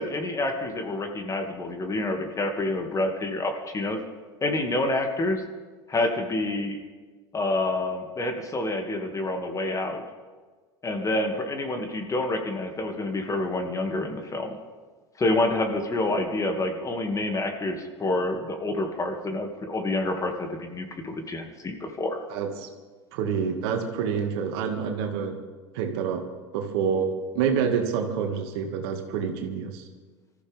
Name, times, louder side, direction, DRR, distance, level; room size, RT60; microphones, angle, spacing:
voice 1, 0.0-4.0 4.4-5.4 5.9-6.8 7.3-10.0 10.8-14.6 15.2-22.2, left 2 dB, 20° left, 4 dB, 2.3 m, -28 dB
voice 2, 22.3-22.7 23.1-25.4 25.7-26.3 26.5-27.1 27.3-29.9, right 7 dB, 65° right, 4 dB, 2.2 m, -27 dB
25.5 x 14.5 x 3.6 m, 1.4 s
hypercardioid pair, 80°, 14 cm